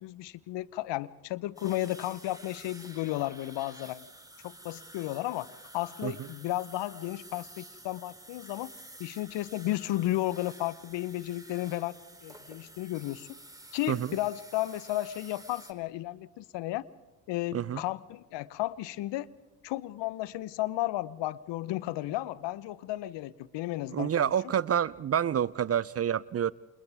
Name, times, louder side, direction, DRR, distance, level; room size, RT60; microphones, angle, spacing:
voice 1, 0.0-4.1 4.4-8.7 9.0-11.9 12.2-13.3 13.7-16.8 17.3-19.3 19.6-24.3, left 16 dB, 60° left, 19 dB, 1.0 m, -33 dB
sound 1, 1.6-15.7, right 1 dB, 5° right, 3.5 m, -51 dB
voice 2, 23.9-26.5, right 9 dB, 30° right, 21 dB, 0.6 m, -28 dB
29.0 x 27.5 x 3.6 m, 1.1 s
hypercardioid pair, 55°, 49 cm